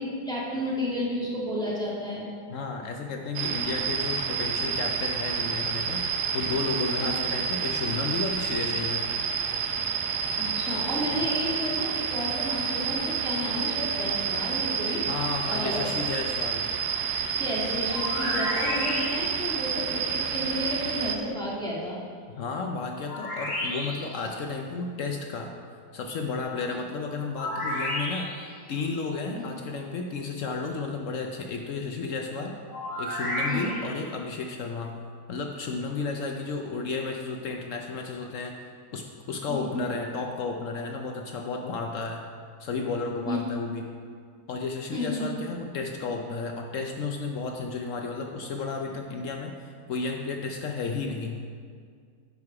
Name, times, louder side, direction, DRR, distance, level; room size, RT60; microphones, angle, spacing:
voice 1, 0.0-2.3 7.0-7.1 10.4-15.8 17.4-22.0 26.7-26.8 29.3-29.5 33.5-33.8 39.5-39.7 43.2-43.4 44.9-45.2, left 1 dB, 5° left, -7 dB, 1.7 m, -32 dB
voice 2, 2.5-6.0 6.3-9.1 11.1-11.2 15.1-16.7 22.4-25.5 25.9-28.3 28.7-32.5 33.0-34.9 35.3-38.5 38.9-42.2 42.6-43.8 44.5-51.4, left 4 dB, 65° left, 2 dB, 0.9 m, -32 dB
sound 1, 3.3-21.2, right 6 dB, 80° right, 1.2 m, -29 dB
sound 2, 17.9-19.5 23.0-24.2 27.3-28.6 32.7-34.0, left 1 dB, 85° left, 2.9 m, -31 dB
10.5 x 4.8 x 4.8 m, 2.1 s
omnidirectional pair, 1.7 m